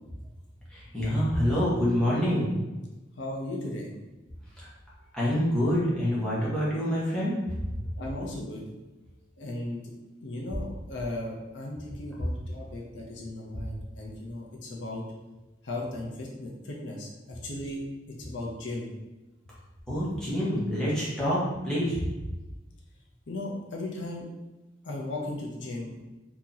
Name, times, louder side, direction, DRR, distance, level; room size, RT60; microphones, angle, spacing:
voice 1, 0.7-2.5 4.6-4.7 5.1-7.3 13.5-13.6 19.9-22.1, equal, 5° left, -9 dB, 1.1 m, -26 dB
voice 2, 3.2-3.9 8.0-8.6 9.4-9.8 10.2-15.0 15.6-17.8 18.1-18.9 23.3-24.2 24.8-26.0, left 1 dB, 70° left, -1 dB, 0.7 m, -36 dB
2.9 x 2.8 x 3.8 m, 1.1 s
head